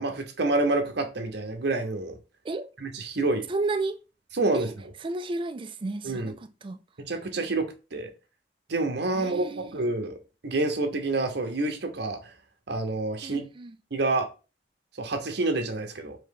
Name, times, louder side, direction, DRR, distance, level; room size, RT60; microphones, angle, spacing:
voice 1, 0.0-2.1 2.8-3.5 4.3-4.7 6.0-6.3 7.1-8.1 8.7-10.2 10.4-12.2 12.7-13.4 13.9-14.3 15.0-16.2, right 2 dB, 65° right, 0.8 m, -28 dB
voice 2, 3.5-4.0 4.5-4.7 5.0-6.8 9.2-9.7 13.2-13.8, right 3 dB, 30° right, 0.4 m, -32 dB
3.8 x 2.8 x 3.7 m
head